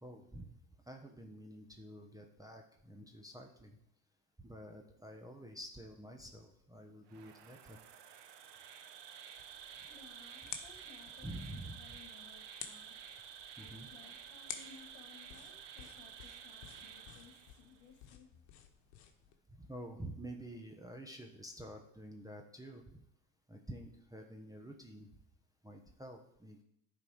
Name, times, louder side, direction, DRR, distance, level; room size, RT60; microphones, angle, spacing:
voice 1, 0.0-0.6 0.9-3.7 4.4-7.8 11.2-11.8 13.6-13.9 19.5-23.0 23.5-25.1 25.6-26.6, right 1 dB, 5° right, 2 dB, 1.0 m, -49 dB
Insect, 7.1-17.8, right 8 dB, 55° right, 1.0 m, -52 dB
sound 1, 9.4-19.4, left 9 dB, 80° left, 1.1 m, -53 dB
voice 2, 9.8-12.9 13.6-18.3, left 5 dB, 65° left, 7 dB, 1.5 m, -60 dB
10.5 x 4.1 x 4.7 m, 0.75 s
supercardioid pair, 80°, 49 cm